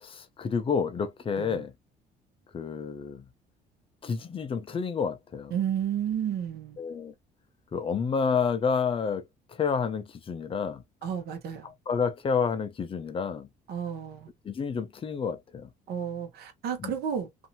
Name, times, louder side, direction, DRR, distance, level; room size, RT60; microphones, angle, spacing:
voice 1, 0.0-1.7 2.5-3.2 4.0-5.5 6.8-7.1 7.7-9.2 9.5-10.8 11.6-13.5 14.4-15.7 16.8-16.9, left 6 dB, 30° left, 0.6 m, -29 dB
voice 2, 5.5-6.8 11.0-11.7 13.7-14.3 15.9-17.3, right 8 dB, 70° right, 1.0 m, -32 dB
2.7 x 2.6 x 2.6 m
cardioid pair, 110°, 17 cm